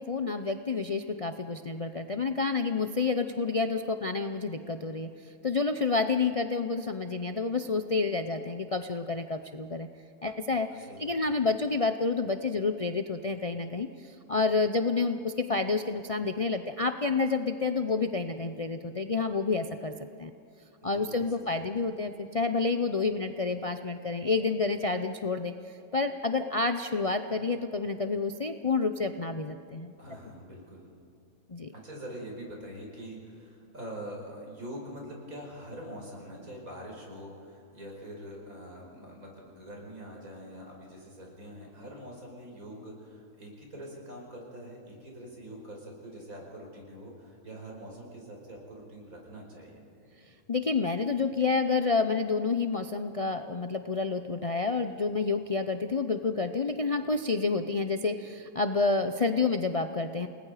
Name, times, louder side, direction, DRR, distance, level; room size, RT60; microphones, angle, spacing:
voice 1, 0.0-5.1 5.4-9.9 10.2-19.9 20.2-20.3 20.8-25.5 25.9-29.9 31.5-31.7 50.5-60.3, left 4 dB, 35° left, 7 dB, 0.5 m, -29 dB
voice 2, 10.7-11.4 20.8-21.7 30.0-30.9 31.7-49.8, equal, 75° right, -1 dB, 5.4 m, -44 dB
29.5 x 19.5 x 5.0 m, 2.6 s
omnidirectional pair, 1.5 m